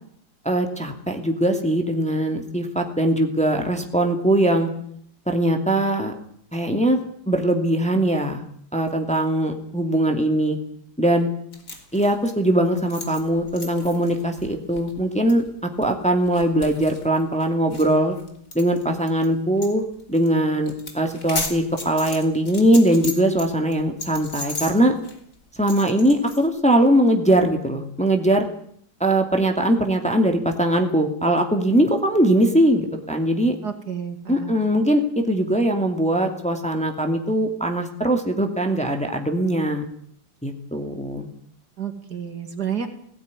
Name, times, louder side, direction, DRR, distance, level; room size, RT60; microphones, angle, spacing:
voice 1, 0.4-4.7 5.3-6.1 6.5-7.0 7.3-8.4 8.7-10.6 11.0-11.3 11.9-18.2 18.5-19.8 20.1-25.0 25.6-28.5 29.0-33.6 34.3-39.8 40.4-41.3, right 1 dB, 5° left, 3 dB, 2.3 m, -21 dB
sound 1, 11.5-19.3 19.6-19.7 20.0-20.3 20.6-23.5 23.7-26.5, left 3 dB, 45° left, 3.5 m, -35 dB
voice 2, 33.6-34.8 41.8-42.9, right 8 dB, 60° right, 7 dB, 2.7 m, -30 dB
17.5 x 17.0 x 9.7 m, 0.66 s
omnidirectional pair, 2.0 m